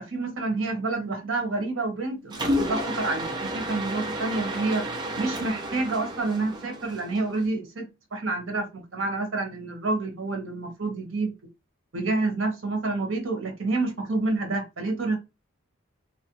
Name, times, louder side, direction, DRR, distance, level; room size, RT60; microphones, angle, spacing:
voice 1, 0.0-4.9 5.2-7.9 8.1-11.3 11.9-15.2, right 3 dB, 65° right, 0.9 m, -28 dB
Mechanisms, 2.3-7.4, equal, 20° right, 0.6 m, -31 dB
3.0 x 2.4 x 2.8 m
head